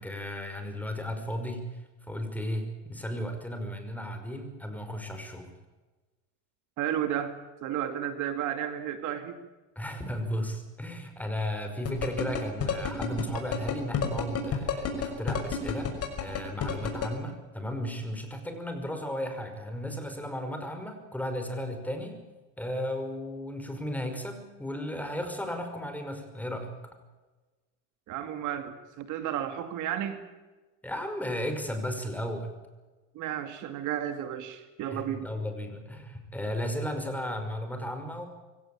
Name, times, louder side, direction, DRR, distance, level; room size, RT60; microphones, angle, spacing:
voice 1, 0.0-1.6 2.0-5.5 9.8-15.9 16.2-22.2 22.6-26.7 30.8-32.6 34.9-38.3, equal, 5° left, 6 dB, 5.6 m, -35 dB
voice 2, 6.8-7.3 7.6-9.4 28.1-30.2 33.1-35.3, right 10 dB, 55° right, 8 dB, 2.3 m, -32 dB
sound 1, 11.9-17.1, left 8 dB, 40° left, 6.3 m, -29 dB
24.5 x 17.0 x 8.7 m, 1.2 s
supercardioid pair, 115°, 36 cm